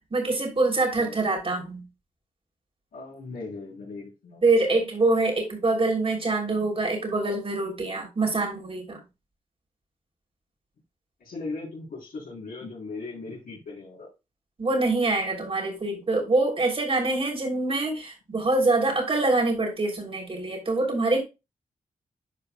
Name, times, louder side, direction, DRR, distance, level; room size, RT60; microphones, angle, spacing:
voice 1, 0.1-1.8 4.4-9.0 14.6-21.2, right 2 dB, 40° right, 1 dB, 3.1 m, -25 dB
voice 2, 2.9-4.4 11.2-14.1, left 3 dB, 85° left, -5 dB, 3.9 m, -38 dB
11.0 x 5.0 x 2.3 m, 0.25 s
cardioid pair, 80°, 15 cm